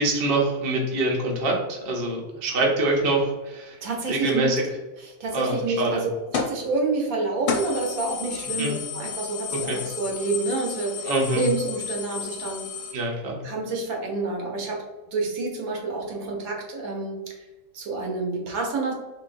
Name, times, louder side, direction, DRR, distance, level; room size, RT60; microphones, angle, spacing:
voice 1, 0.0-3.8 4.1-4.6 5.3-6.0 8.6-8.7 9.5-9.8 11.0-11.4 12.9-13.4, right 2 dB, 50° right, -1 dB, 0.8 m, -25 dB
voice 2, 3.8-4.6 5.0-12.7 13.4-14.8 15.1-17.4 17.7-18.9, right 3 dB, 70° right, 0 dB, 1.2 m, -28 dB
sound 1, 6.3-6.6 7.0-7.1 7.5-12.9, left 6 dB, 65° left, 1.0 m, -32 dB
3.9 x 3.1 x 2.5 m, 1.1 s
omnidirectional pair, 1.6 m